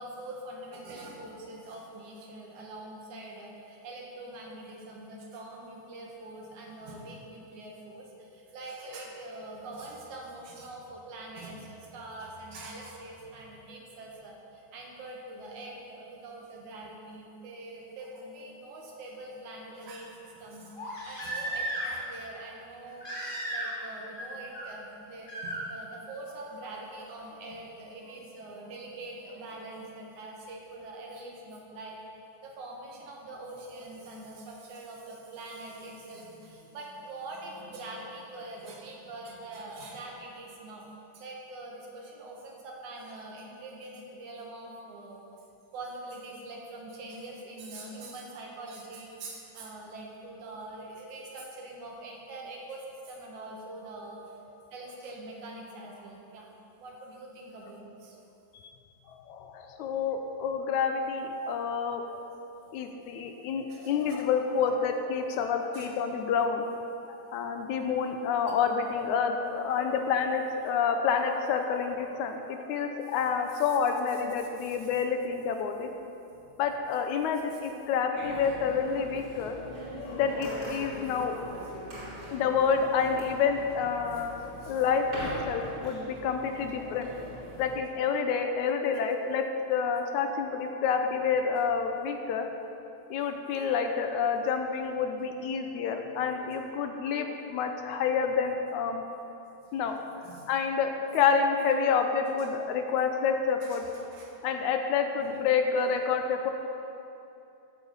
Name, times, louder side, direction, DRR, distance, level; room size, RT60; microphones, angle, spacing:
voice 1, 0.0-32.0 32.4-40.9 41.1-45.2 45.7-54.4 54.7-56.5 56.8-58.2 63.7-64.2 65.7-65.9 68.5-68.6 69.7-70.5 71.1-71.2 73.5-73.6 74.4-74.8 76.3-76.4 84.6-84.8 85.7-85.8 91.5-91.6 100.2-100.5 103.6-104.3, right 2 dB, 75° right, -1 dB, 3.0 m, -44 dB
Crying sobbing, 18.0-18.1 20.8-22.1 23.0-23.9 24.1-24.6 25.3-25.6 27.2-27.3, right 1 dB, 20° left, 2.0 m, -35 dB
voice 2, 59.1-62.1 62.7-66.7 67.1-75.9 76.6-79.6 80.0-81.4 82.3-92.5 93.1-99.0 99.7-100.0 100.5-103.8 104.4-106.5, left 6 dB, 80° left, 5 dB, 2.0 m, -28 dB
sound 1, 78.1-87.8, equal, 30° right, 3.0 m, -42 dB
14.0 x 8.2 x 5.5 m, 2.8 s
omnidirectional pair, 3.6 m